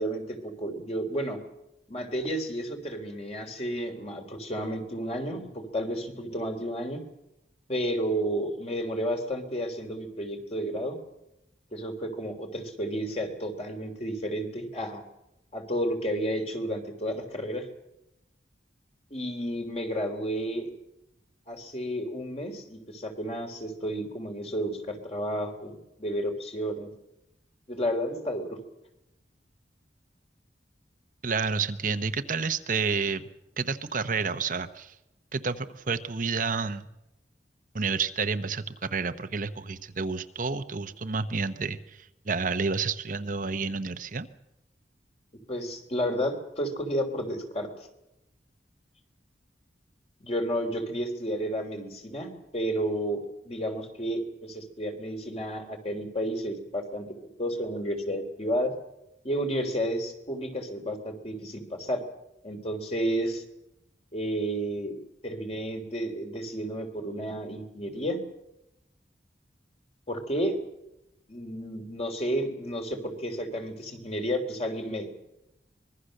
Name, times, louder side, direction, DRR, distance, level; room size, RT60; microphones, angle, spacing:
voice 1, 0.0-1.4 1.9-7.0 7.7-11.0 11.7-15.0 15.5-17.7 19.1-20.7 21.5-26.9 27.7-28.6 45.5-47.7 50.2-57.1 57.4-58.7 59.2-62.0 62.4-63.4 64.1-64.9 65.2-68.2 70.1-70.5 71.3-75.1, equal, 35° left, 4 dB, 3.4 m, -31 dB
voice 2, 31.2-33.3 33.6-34.9 35.3-36.8 37.7-44.3, right 5 dB, 50° right, 9 dB, 0.9 m, -30 dB
25.0 x 21.0 x 6.6 m, 0.89 s
head